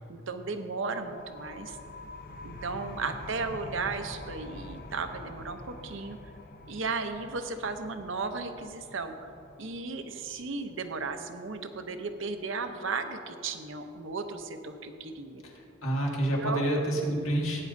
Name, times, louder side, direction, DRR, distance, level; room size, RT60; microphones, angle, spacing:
voice 1, 0.0-1.8 2.4-6.2 6.7-9.1 9.6-15.4 16.4-16.7, right 4 dB, 65° right, 7 dB, 0.7 m, -35 dB
sound 1, 1.0-12.4, left 2 dB, 45° left, 0.8 m, -46 dB
voice 2, 15.5-17.6, right 1 dB, 75° left, -2 dB, 2.0 m, -28 dB
17.0 x 9.6 x 2.7 m, 2.7 s
head